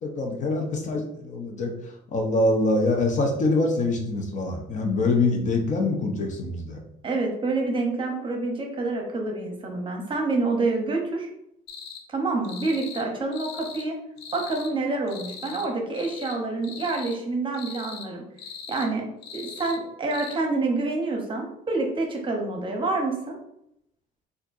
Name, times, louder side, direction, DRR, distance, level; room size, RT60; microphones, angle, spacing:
voice 1, 0.0-6.8, left 2 dB, 45° left, 2 dB, 0.7 m, -25 dB
voice 2, 7.0-11.3 12.1-14.0 14.3-18.2 18.7-19.1 19.3-23.4, right 3 dB, 30° right, 1 dB, 0.8 m, -27 dB
sound 1, 11.7-12.0 12.4-13.1 13.3-13.9 14.2-14.7 15.1-15.7 15.9-16.4 16.6-17.2 17.5-18.1 18.4-18.9 19.2-19.8 20.1-20.4, left 6 dB, 80° left, 0.6 m, -40 dB
4.3 x 2.5 x 2.6 m, 0.78 s
cardioid pair, 110°, 17 cm